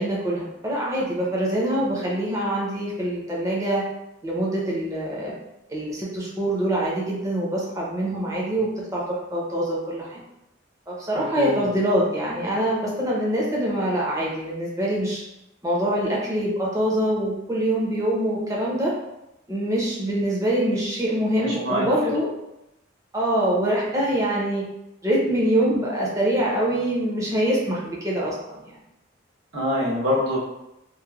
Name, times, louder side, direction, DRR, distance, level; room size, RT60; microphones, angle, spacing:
voice 1, 0.0-3.8 4.2-5.3 5.7-10.2 10.9-15.2 15.6-18.9 19.5-22.3 23.1-24.6 25.0-28.7, right 1 dB, 15° right, -5 dB, 0.6 m, -24 dB
voice 2, 11.4-11.7 21.4-22.1 29.5-30.4, left 1 dB, 75° right, -7 dB, 1.0 m, -25 dB
3.0 x 2.1 x 2.3 m, 0.88 s
head